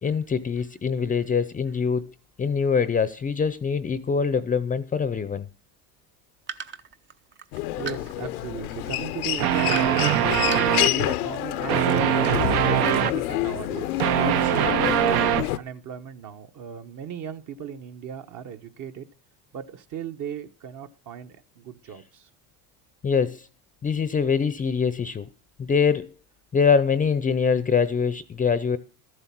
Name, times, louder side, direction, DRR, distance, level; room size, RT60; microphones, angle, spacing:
voice 1, 0.0-5.5 23.0-23.5 23.8-25.3 25.6-26.1 26.5-28.8, left 6 dB, 20° left, 0.7 m, -24 dB
sound 1, 6.5-8.5 9.3-10.2 10.5-11.1, right 5 dB, 25° right, 0.7 m, -37 dB
Human voice, 7.5-15.6, left 15 dB, 90° left, 0.8 m, -28 dB
voice 2, 7.8-10.1 10.8-12.1 12.5-19.1 19.5-22.3, right 8 dB, 45° right, 1.3 m, -37 dB
sound 2, 9.4-11.0 11.7-13.2 13.8-15.5, right 12 dB, 60° right, 0.9 m, -22 dB
13.5 x 8.0 x 6.0 m
supercardioid pair, 110°, 43 cm